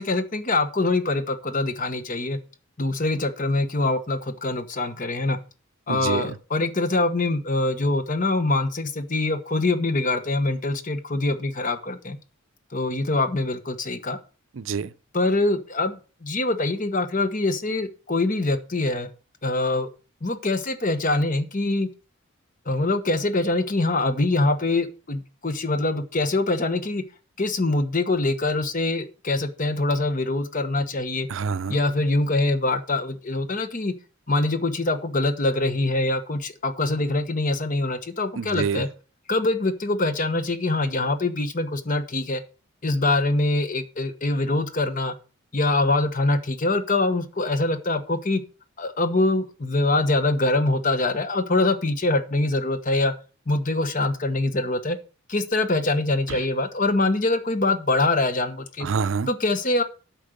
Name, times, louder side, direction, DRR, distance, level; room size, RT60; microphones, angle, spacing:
voice 1, 0.0-2.4 2.8-5.4 5.9-12.2 12.7-14.2 15.1-19.1 19.4-19.9 20.2-21.9 22.7-27.0 27.4-31.3 31.7-33.9 34.3-38.9 39.3-42.4 42.8-45.1 45.5-48.4 48.8-53.1 53.5-55.0 55.3-58.9 59.3-59.8, left 2 dB, 40° left, 1.1 m, -24 dB
voice 2, 5.9-6.4 14.6-14.9 31.3-31.8 38.4-38.8 56.3-56.4 58.8-59.3, right 5 dB, 70° right, 0.5 m, -27 dB
8.8 x 5.4 x 6.6 m
head